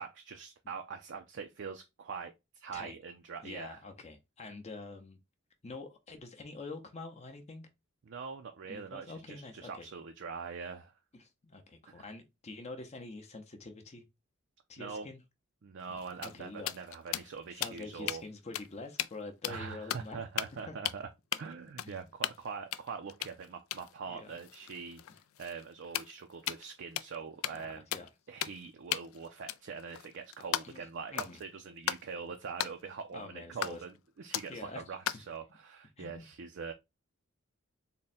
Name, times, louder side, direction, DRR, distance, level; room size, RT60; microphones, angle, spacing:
voice 1, 0.0-3.8 8.0-10.9 11.9-12.0 14.8-15.1 15.6-18.2 19.5-25.0 25.4-27.9 28.3-36.7, right 5 dB, 60° right, 0.4 m, -43 dB
voice 2, 3.4-5.2 5.6-7.7 8.6-9.9 11.1-14.1 14.7-15.2 15.9-16.1 16.3-16.7 17.5-20.2 20.7-20.8 22.0-22.1 24.0-24.3 27.5-28.1 30.6-31.4 33.1-33.8 34.5-34.8 36.0-36.3, left 3 dB, 30° left, 0.6 m, -46 dB
sound 1, 15.8-18.2 18.5-18.7 19.0-19.1 19.4-20.1 20.4-20.6 20.8-21.0 21.3-21.4 21.8-22.5 22.7-26.7 26.9-27.1 27.4-27.7 27.9-28.1 28.4-28.6 28.9-30.8 31.1-31.4 31.8-32.0 32.6-32.7 33.6-34.0 34.3-34.6 35.0-35.3, left 12 dB, 75° left, 0.3 m, -37 dB
3.7 x 2.1 x 4.1 m
head